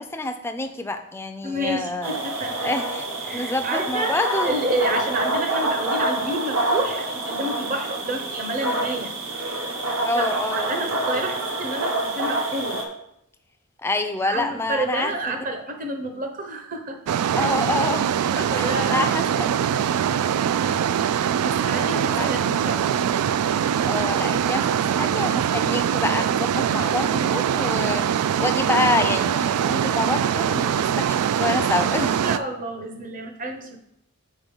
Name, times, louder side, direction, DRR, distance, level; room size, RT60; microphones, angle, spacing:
voice 1, 0.0-2.2 2.6-3.0 3.3-4.6 10.0-10.7 13.8-15.1 17.4-19.6 20.6-20.8 22.2-22.3 23.9-32.2, left 2 dB, 10° left, 7 dB, 0.4 m, -27 dB
voice 2, 1.4-2.7 3.2-9.1 10.1-10.2 10.6-12.8 14.2-17.0 17.3-17.5 18.3-19.1 21.4-23.1 32.0-33.8, right 1 dB, 35° right, 4 dB, 0.9 m, -30 dB
sound 1, 2.0-12.8, right 2 dB, 65° right, 1.1 m, -27 dB
sound 2, 17.1-32.4, right 8 dB, 85° right, 0.3 m, -23 dB
7.3 x 4.1 x 5.4 m, 0.78 s
head